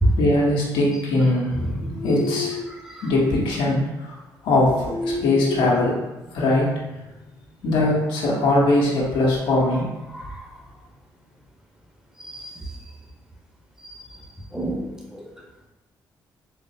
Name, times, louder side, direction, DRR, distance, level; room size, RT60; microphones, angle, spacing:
voice 1, 0.2-2.7 3.0-4.1 4.4-6.0 6.3-6.7 7.6-9.8, left 2 dB, 85° left, 1.1 m, -21 dB
voice 2, 2.7-3.1 10.1-10.4 12.2-12.8 13.9-14.0 14.5-15.3, right 1 dB, 5° right, 0.9 m, -28 dB
4.0 x 3.0 x 2.8 m
supercardioid pair, 65°, 9 cm